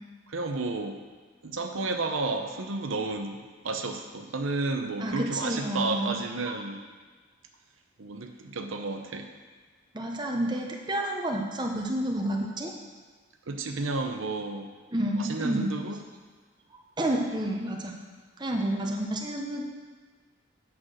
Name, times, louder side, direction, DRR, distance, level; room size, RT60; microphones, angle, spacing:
voice 1, 0.3-1.0 1.4-6.8 8.0-9.3 13.5-14.7 15.2-16.0, right 3 dB, 80° right, 5 dB, 0.8 m, -32 dB
voice 2, 5.0-6.2 6.5-6.6 9.9-12.7 14.9-15.7 17.0-18.0 18.4-19.6, right 1 dB, 20° right, 0 dB, 0.9 m, -30 dB
8.6 x 5.9 x 6.4 m, 1.5 s
head